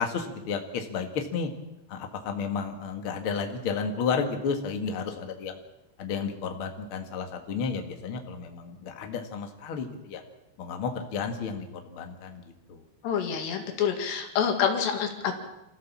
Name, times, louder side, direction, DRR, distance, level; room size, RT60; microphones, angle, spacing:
voice 1, 0.0-1.5 1.9-5.6 6.0-10.2 10.6-12.4 12.7-12.8, left 5 dB, 50° left, 5 dB, 1.6 m, -32 dB
voice 2, 13.0-15.4, left 7 dB, 70° left, 4 dB, 4.2 m, -27 dB
25.5 x 15.5 x 7.4 m, 0.95 s
omnidirectional pair, 5.2 m